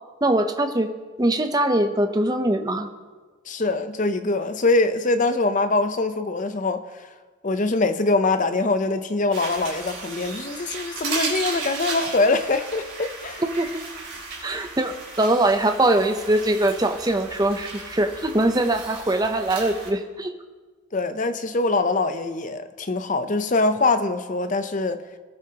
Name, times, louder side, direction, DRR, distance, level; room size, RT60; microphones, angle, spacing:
voice 1, 0.2-0.9 1.2-2.9 13.4-13.7 14.4-20.3, right 1 dB, 20° right, 0.6 m, -22 dB
voice 2, 3.5-7.1 7.4-13.4 20.9-25.0, left 3 dB, 35° left, 0.6 m, -23 dB
sound 1, 9.3-19.9, right 3 dB, 50° right, 4.4 m, -35 dB
20.5 x 9.1 x 2.9 m
head